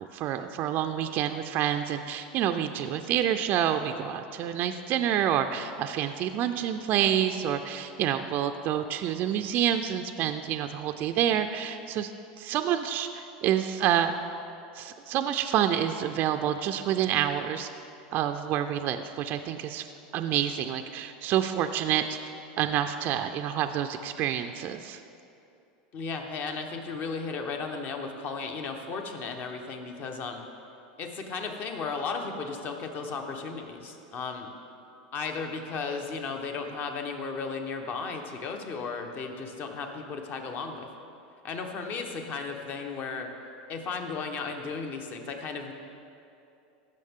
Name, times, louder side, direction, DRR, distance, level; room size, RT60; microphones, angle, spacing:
voice 1, 0.0-12.1 12.4-14.1 14.8-17.7 18.1-19.9 20.1-22.2 22.6-25.0, right 10 dB, 45° right, 7 dB, 0.4 m, -28 dB
voice 2, 25.9-30.5 31.0-34.5 35.1-40.9 41.4-43.3 43.7-45.7, left 4 dB, 40° left, 4 dB, 1.1 m, -35 dB
15.0 x 6.3 x 3.7 m, 2.7 s
supercardioid pair, 125°, 5 cm